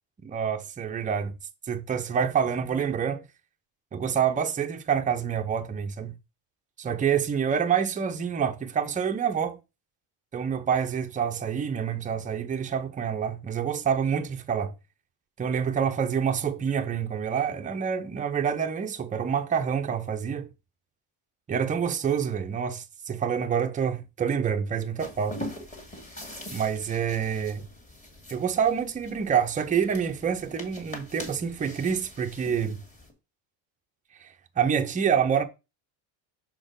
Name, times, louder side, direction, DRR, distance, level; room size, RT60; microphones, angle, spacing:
voice 1, 0.2-1.3 1.7-3.2 3.9-6.1 6.8-9.6 10.3-14.7 15.4-20.5 21.5-25.4 26.5-27.7 28.3-32.8 34.2-35.4, right 7 dB, 15° right, 0.6 m, -27 dB
sound 1, 25.0-33.1, left 1 dB, 15° left, 1.8 m, -43 dB
6.1 x 4.3 x 5.1 m
cardioid pair, 150°, 48 cm